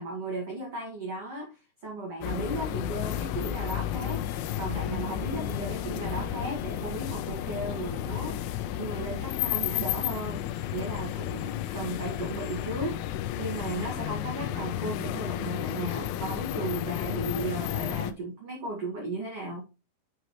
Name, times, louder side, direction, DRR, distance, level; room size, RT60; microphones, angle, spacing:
voice 1, 0.0-4.2 4.6-8.4 8.8-10.4 10.7-13.0 13.4-19.7, right 2 dB, 70° right, -2 dB, 1.4 m, -35 dB
sound 1, 2.2-18.1, left 12 dB, 85° left, 3.1 m, -32 dB
9.1 x 4.8 x 3.0 m, 0.30 s
omnidirectional pair, 5.7 m